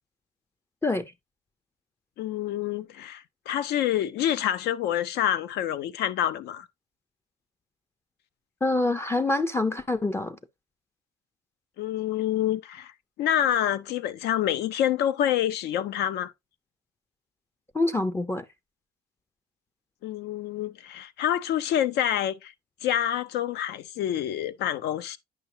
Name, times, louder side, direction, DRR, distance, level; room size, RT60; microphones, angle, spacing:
voice 1, 2.2-6.7 11.8-12.9 13.2-16.3 20.0-22.5 22.8-25.2, left 11 dB, 75° left, 0.7 m, -27 dB
voice 2, 8.6-10.4 17.7-18.5, left 2 dB, 15° left, 0.5 m, -25 dB
9.4 x 5.7 x 2.7 m
cardioid pair, 110°, 17 cm